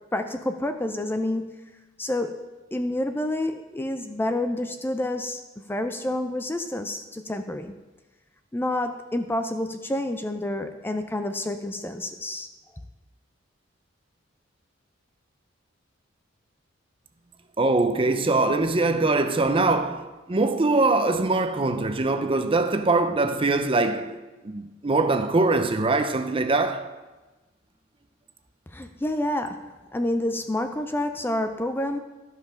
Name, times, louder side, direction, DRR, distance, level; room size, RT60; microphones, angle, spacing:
voice 1, 0.1-1.6 2.0-2.4 2.7-7.8 8.5-12.5 28.7-32.0, left 1 dB, 10° left, 0.4 m, -28 dB
voice 2, 17.6-26.9, right 3 dB, 30° right, 0.6 m, -23 dB
12.5 x 5.6 x 5.8 m
head